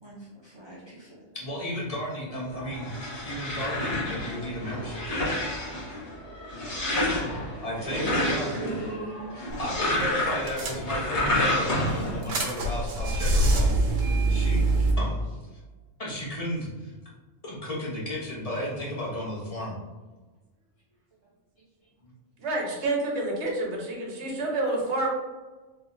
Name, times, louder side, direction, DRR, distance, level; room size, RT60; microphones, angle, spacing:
voice 1, 0.0-1.3 7.9-9.5 14.3-14.8 21.6-21.7, right 2 dB, 25° right, -6 dB, 0.6 m, -39 dB
voice 2, 1.3-2.9 3.2-5.4 7.6-8.5 9.3-14.7 15.0-15.2 16.0-16.9 17.4-19.8 22.0-22.1, equal, 30° left, -5 dB, 1.1 m, -34 dB
sound 1, 2.5-12.2, left 1 dB, 65° left, 1.5 m, -29 dB
voice 3, 7.6-8.1 22.4-25.1, right 2 dB, 65° right, -1 dB, 1.3 m, -29 dB
sound 2, 9.5-9.7 10.0-10.1 10.5-11.3 11.8-14.9, right 2 dB, 85° right, 1.1 m, -24 dB
3.7 x 3.5 x 2.6 m, 1.2 s
omnidirectional pair, 1.3 m